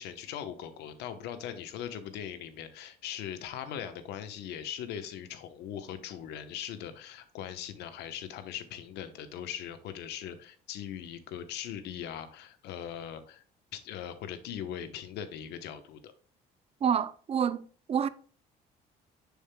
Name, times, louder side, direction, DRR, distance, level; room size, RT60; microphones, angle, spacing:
voice 1, 0.0-13.4 13.7-16.1, left 9 dB, 85° left, 0.9 m, -40 dB
voice 2, 16.8-18.1, right 8 dB, 35° right, 0.5 m, -28 dB
6.8 x 6.4 x 2.2 m
cardioid pair, 110°, 17 cm